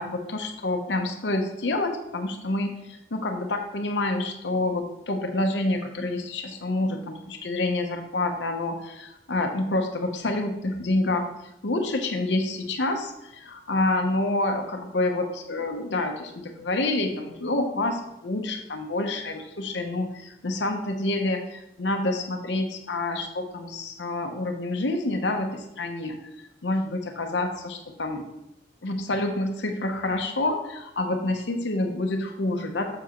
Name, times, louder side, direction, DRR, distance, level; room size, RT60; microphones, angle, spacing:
voice 1, 0.0-11.3 11.6-26.2 26.6-28.3 28.8-33.0, left 2 dB, 80° left, 4 dB, 0.8 m, -28 dB
7.3 x 6.9 x 3.0 m, 0.84 s
head